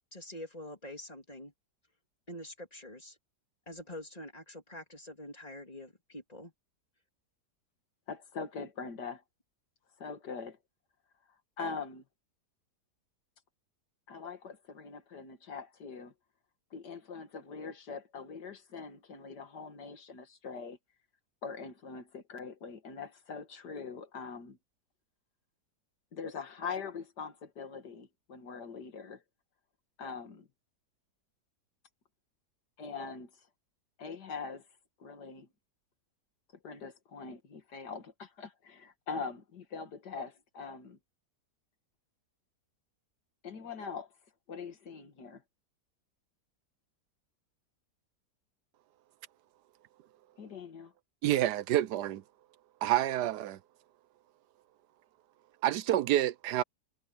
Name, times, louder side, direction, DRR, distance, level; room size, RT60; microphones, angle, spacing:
voice 1, 0.1-1.5 2.3-3.2 3.7-6.5, left 1 dB, 25° left, 3.5 m, -46 dB
voice 2, 8.1-9.2 10.0-10.6 11.6-12.0 14.1-16.1 16.7-20.8 21.4-24.6 26.1-29.2 30.0-30.5 32.8-33.3 34.0-34.7 35.0-35.5 36.6-41.0 43.4-44.1 44.5-45.4 50.4-50.9, left 5 dB, 85° left, 2.4 m, -42 dB
voice 3, 51.2-52.2 52.8-53.6 55.6-56.6, right 13 dB, 80° right, 1.3 m, -28 dB
omnidirectional pair, 1.7 m